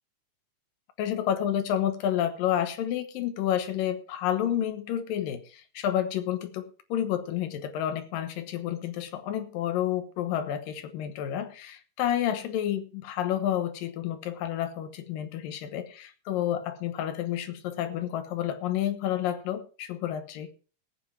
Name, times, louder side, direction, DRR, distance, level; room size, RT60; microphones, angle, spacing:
voice 1, 1.0-20.5, left 11 dB, 85° left, 8 dB, 2.9 m, -30 dB
18.0 x 7.9 x 4.7 m, 0.36 s
omnidirectional pair, 3.8 m